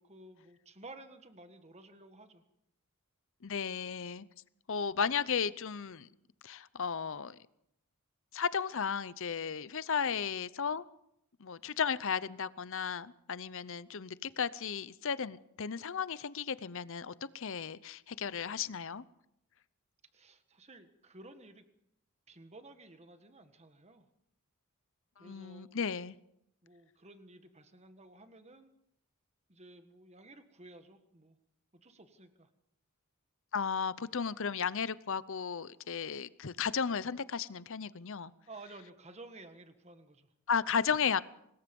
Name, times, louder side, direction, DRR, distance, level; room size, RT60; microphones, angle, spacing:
voice 1, 0.0-2.4 20.1-21.6 22.3-24.1 25.2-25.7 26.6-28.7 29.5-31.4 31.7-32.5 38.5-40.3, right 2 dB, 30° right, 1.6 m, -53 dB
voice 2, 3.4-4.3 4.7-6.1 6.4-7.4 8.3-10.8 11.4-19.0 25.2-26.2 33.5-38.3 40.5-41.2, left 6 dB, 60° left, 0.7 m, -34 dB
25.5 x 20.5 x 5.4 m
head